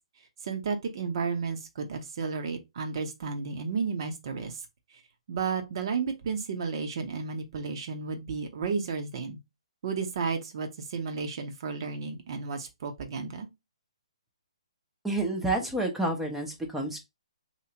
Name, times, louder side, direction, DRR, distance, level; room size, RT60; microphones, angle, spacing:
voice 1, 0.4-4.6 5.3-9.4 9.8-13.5, right 5 dB, 50° right, 0.9 m, -32 dB
voice 2, 15.0-17.0, right 2 dB, 5° right, 0.7 m, -29 dB
3.2 x 2.9 x 2.8 m
figure-of-eight pair, 140°, 3 cm